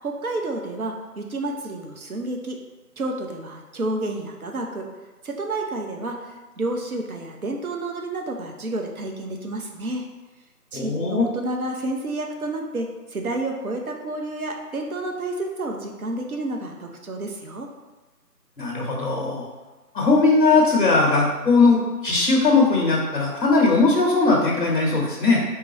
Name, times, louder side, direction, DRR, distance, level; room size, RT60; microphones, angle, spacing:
voice 1, 0.0-2.6 3.0-4.9 5.2-10.1 10.7-17.7, right 2 dB, 60° right, 2 dB, 0.8 m, -30 dB
voice 2, 10.7-11.3 18.6-19.5 19.9-25.4, left 3 dB, 30° left, -2 dB, 1.1 m, -19 dB
4.7 x 2.3 x 4.0 m, 1.2 s
figure-of-eight pair, 170°, 48 cm